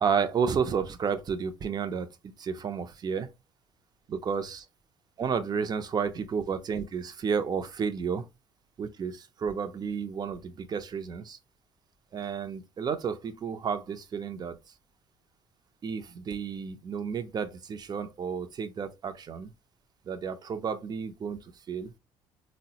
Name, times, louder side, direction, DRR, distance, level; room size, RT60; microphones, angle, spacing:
voice 1, 0.0-3.3 4.1-4.6 5.2-8.2 8.8-11.4 12.1-14.6 15.8-19.5 20.1-21.4 21.7-21.9, right 6 dB, 40° right, 0.5 m, -31 dB
3.6 x 2.1 x 2.8 m
hypercardioid pair, 65°, 11 cm